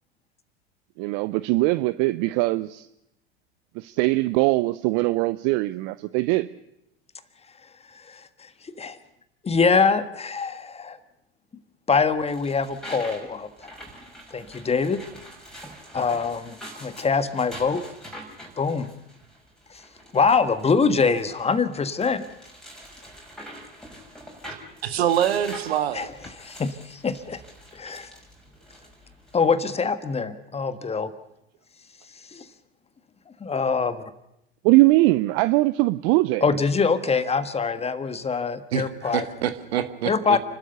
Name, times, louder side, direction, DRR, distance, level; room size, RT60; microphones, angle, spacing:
voice 1, 1.0-2.9 3.7-6.5 34.6-36.4, right 20 dB, 50° right, 16 dB, 0.6 m, -21 dB
voice 2, 7.9-9.0 9.4-11.0 11.9-13.7 14.3-15.0 15.9-17.8 18.6-18.9 19.7-19.8 20.1-22.3 25.9-26.1 26.4-27.4 27.7-28.1 29.3-31.1 32.3-32.4 33.4-34.0 36.4-39.3 40.0-40.4, left 5 dB, 20° left, 12 dB, 1.5 m, -24 dB
sound 1, 12.0-29.4, equal, ahead, 6.0 m, -45 dB
voice 3, 24.8-26.1 38.7-40.1, right 10 dB, 75° right, 10 dB, 1.7 m, -25 dB
30.0 x 12.5 x 6.8 m, 0.81 s
hypercardioid pair, 85°, 32 cm